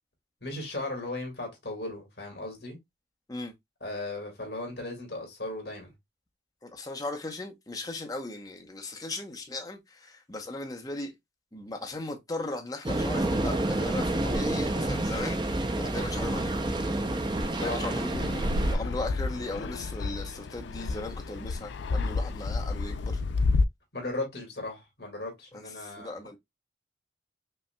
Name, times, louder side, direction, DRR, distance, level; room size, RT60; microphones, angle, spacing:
voice 1, 0.4-2.8 3.8-5.9 17.6-17.9 23.9-26.4, left 2 dB, 65° left, 1.9 m, -37 dB
voice 2, 6.6-11.1 11.5-16.6 17.5-18.3 18.7-23.2 25.5-26.4, left 2 dB, 20° left, 0.8 m, -37 dB
sound 1, 12.8-18.7, right 1 dB, 25° right, 0.4 m, -28 dB
Fixed-wing aircraft airplane, 18.1-23.6, left 3 dB, 85° left, 0.4 m, -30 dB
5.3 x 2.8 x 2.2 m
head